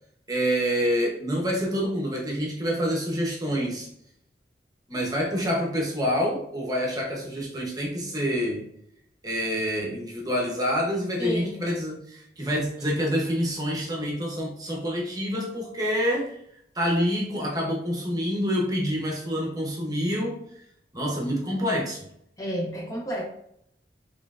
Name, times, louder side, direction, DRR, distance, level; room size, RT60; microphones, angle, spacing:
voice 1, 0.3-3.9 4.9-8.6 9.2-16.4 16.7-20.4 20.9-22.0, equal, 20° right, -1 dB, 0.8 m, -27 dB
voice 2, 11.2-11.7 22.4-23.2, equal, 20° left, -1 dB, 0.5 m, -31 dB
4.2 x 3.2 x 2.4 m, 0.71 s
head